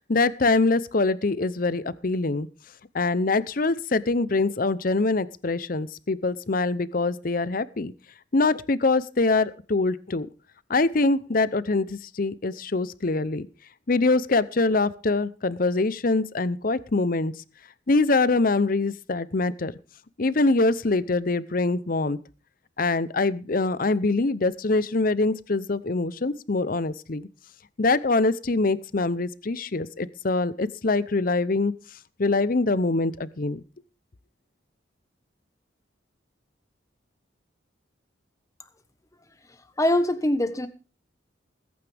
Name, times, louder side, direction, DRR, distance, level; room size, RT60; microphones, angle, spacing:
voice 1, 0.1-2.5 2.9-7.9 8.3-10.3 10.7-13.5 13.9-17.3 17.9-19.7 20.2-22.2 22.8-27.3 27.8-31.7 32.2-33.6, left 3 dB, 45° left, 17 dB, 0.7 m, -24 dB
voice 2, 39.8-40.7, left 1 dB, 15° left, 10 dB, 1.1 m, -22 dB
20.5 x 9.5 x 3.5 m, 0.35 s
head